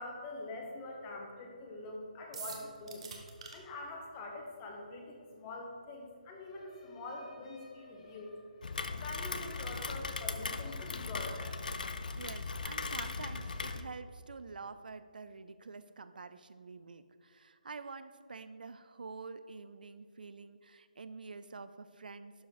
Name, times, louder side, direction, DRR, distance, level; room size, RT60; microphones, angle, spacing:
voice 1, 0.0-3.1 3.5-8.3 8.9-11.6, left 2 dB, 15° left, 0 dB, 1.0 m, -45 dB
sound 1, 2.3-3.5, right 5 dB, 40° right, 1.2 m, -44 dB
sound 2, 4.7-4.8 5.1-10.3 10.6-11.3, left 3 dB, 35° left, 1.8 m, -60 dB
Rain, 8.6-13.8, left 4 dB, 70° left, 0.6 m, -38 dB
voice 2, 12.1-22.5, right 4 dB, 75° right, 12 dB, 0.4 m, -47 dB
12.0 x 3.9 x 4.9 m, 2.2 s
hypercardioid pair, 165°, 5 cm